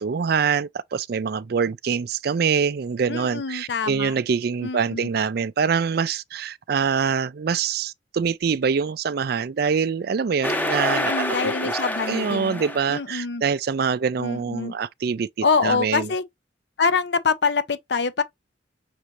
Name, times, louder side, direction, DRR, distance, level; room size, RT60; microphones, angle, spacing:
voice 1, 0.0-11.8 12.1-15.3 15.6-16.1, right 6 dB, 55° right, 0.4 m, -25 dB
voice 2, 3.1-4.2 4.6-5.1 10.9-12.6 12.9-13.4 14.2-14.7 15.4-16.2 16.8-18.2, left 5 dB, 65° left, 0.7 m, -25 dB
sound 1, 10.4-13.0, left 1 dB, 10° left, 0.7 m, -27 dB
6.1 x 2.7 x 3.0 m
head